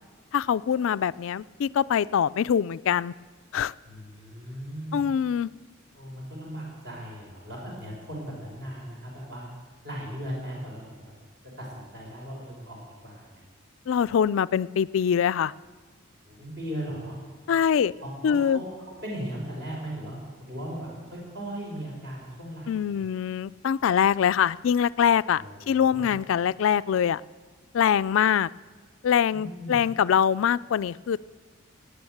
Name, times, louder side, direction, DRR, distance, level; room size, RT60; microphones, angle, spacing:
voice 1, 0.3-3.1 3.5-3.7 4.9-5.5 13.9-15.5 17.5-17.9 18.2-18.6 22.7-27.2 27.7-28.5 29.0-31.2, left 8 dB, 75° left, 17 dB, 0.3 m, -23 dB
voice 2, 3.9-5.1 5.9-9.5 9.8-11.1 11.6-12.8 13.0-13.4 16.2-17.2 18.0-23.1 25.4-26.2 29.3-29.8, equal, 55° right, -3 dB, 5.3 m, -38 dB
18.5 x 9.1 x 7.9 m, 1.5 s
head